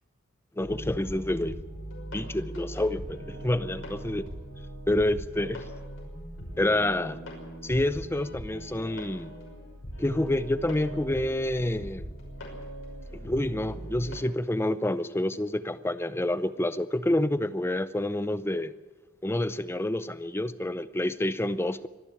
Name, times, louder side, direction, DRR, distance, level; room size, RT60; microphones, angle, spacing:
sound 1, 0.6-14.2, right 1 dB, 75° left, 5.9 m, -40 dB
voice 1, 0.6-1.6 2.1-4.3 4.9-5.6 6.6-7.2 7.6-9.3 10.0-12.1 13.1-18.7 19.2-21.9, left 1 dB, 10° left, 13 dB, 0.6 m, -28 dB
24.5 x 10.5 x 10.0 m, 1.3 s
head